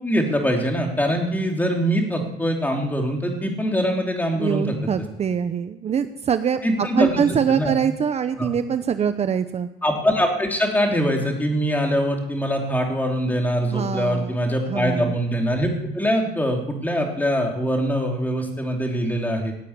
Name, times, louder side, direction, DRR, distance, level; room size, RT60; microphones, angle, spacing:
voice 1, 0.0-4.8 6.6-7.2 7.5-7.7 8.4-8.5 9.8-19.5, equal, 10° left, 1 dB, 3.2 m, -23 dB
voice 2, 4.4-6.6 6.9-9.7 13.7-14.4 14.7-15.1, right 7 dB, 40° right, 10 dB, 0.8 m, -23 dB
16.5 x 8.3 x 9.7 m, 0.87 s
cardioid pair, 110°, 17 cm